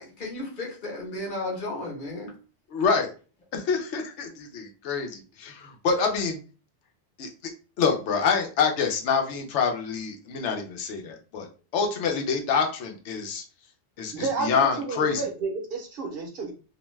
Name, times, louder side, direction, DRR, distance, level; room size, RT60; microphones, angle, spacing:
voice 1, 0.0-2.3, left 2 dB, 50° left, -1 dB, 1.0 m, -34 dB
voice 2, 2.7-3.1 3.5-6.4 7.2-7.3 7.8-11.5 11.7-13.4 14.0-15.2, left 5 dB, 85° left, 3 dB, 0.9 m, -26 dB
voice 3, 14.1-16.5, right 4 dB, 60° right, 1 dB, 0.9 m, -31 dB
2.6 x 2.2 x 3.0 m, 0.36 s
omnidirectional pair, 1.2 m